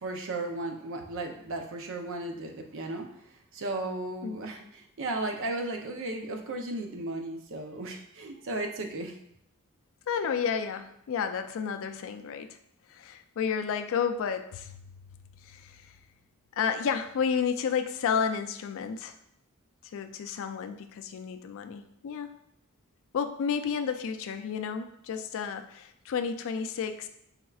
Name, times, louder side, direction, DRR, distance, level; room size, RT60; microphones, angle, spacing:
voice 1, 0.0-3.1 3.5-9.1, right 2 dB, 60° right, 4 dB, 0.6 m, -35 dB
voice 2, 10.1-12.6 12.9-14.8 15.4-15.9 16.5-19.2 19.9-22.3 23.1-27.1, left 6 dB, 60° left, 9 dB, 0.3 m, -31 dB
4.3 x 3.5 x 2.3 m, 0.76 s
head